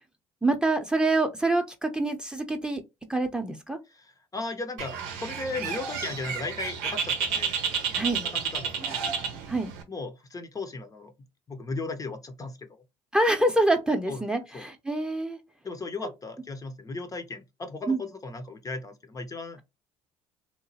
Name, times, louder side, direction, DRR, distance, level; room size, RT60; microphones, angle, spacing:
voice 1, 0.4-2.8 3.1-3.8 7.9-8.2 9.5-9.7 13.1-15.4 17.9-18.0, right 2 dB, 5° right, 0.7 m, -26 dB
voice 2, 3.9-7.6 8.1-8.8 9.9-11.1 11.5-12.8 14.1-14.2 14.5-14.7 15.6-19.6, left 3 dB, 30° left, 0.6 m, -36 dB
Bird, 4.8-9.8, right 6 dB, 80° right, 0.6 m, -31 dB
2.9 x 2.2 x 2.7 m
hypercardioid pair, 70°, 13 cm